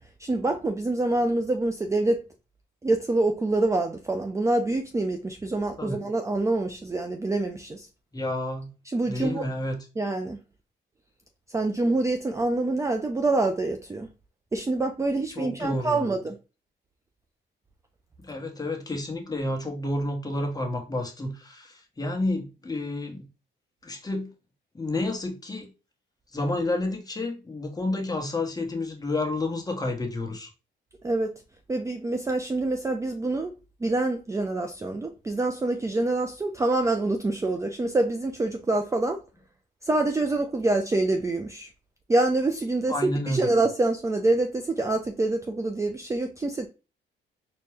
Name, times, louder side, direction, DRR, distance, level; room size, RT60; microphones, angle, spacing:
voice 1, 0.2-2.2 2.8-7.9 8.9-9.4 10.0-10.4 11.5-14.1 14.5-16.4 31.0-31.3 31.7-33.5 33.8-39.2 39.8-41.7 42.1-43.0 43.3-46.7, right 2 dB, 15° right, 0.4 m, -26 dB
voice 2, 8.1-8.7 9.0-9.8 15.3-16.1 18.2-23.2 23.8-24.3 24.7-25.7 26.3-30.5 42.9-43.5, left 2 dB, 20° left, 1.2 m, -30 dB
4.3 x 2.2 x 3.3 m
cardioid pair, 90°, 20 cm